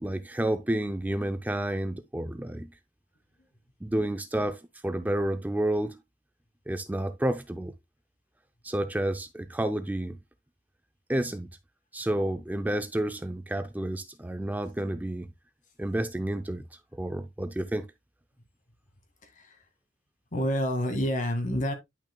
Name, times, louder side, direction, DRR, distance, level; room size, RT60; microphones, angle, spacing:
voice 1, 0.0-2.7 3.8-6.0 6.7-7.7 8.6-10.2 11.1-11.5 11.9-15.3 15.8-17.9, right 1 dB, 10° right, 0.4 m, -30 dB
voice 2, 19.2-19.6 20.3-21.7, equal, 45° left, 2.0 m, -28 dB
10.5 x 6.0 x 2.2 m
head